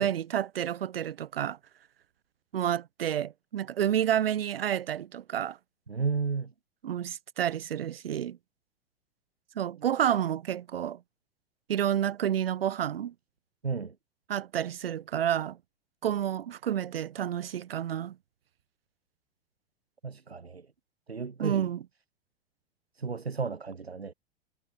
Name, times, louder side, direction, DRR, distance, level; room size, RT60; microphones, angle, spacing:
voice 1, 0.0-1.6 2.5-5.6 6.8-8.4 9.5-11.0 11.7-13.1 14.3-15.6 16.0-18.1 21.4-21.8, right 10 dB, 70° right, 3.3 m, -29 dB
voice 2, 5.9-6.5 13.6-14.0 20.0-20.7 21.1-21.7 23.0-24.1, right 5 dB, 85° right, 2.1 m, -33 dB
figure-of-eight pair, 90°, 30 cm